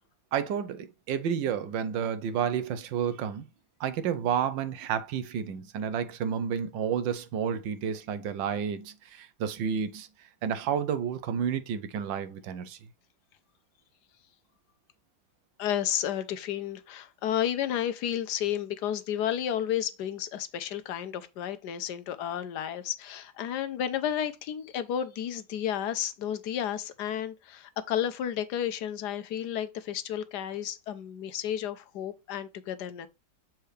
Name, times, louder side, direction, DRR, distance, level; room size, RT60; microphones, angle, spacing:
voice 1, 0.3-3.4 3.8-10.1 10.4-12.8, right 8 dB, 80° right, 1.5 m, -30 dB
voice 2, 15.6-33.1, left 10 dB, 70° left, 1.2 m, -32 dB
7.1 x 4.5 x 3.2 m
omnidirectional pair, 2.0 m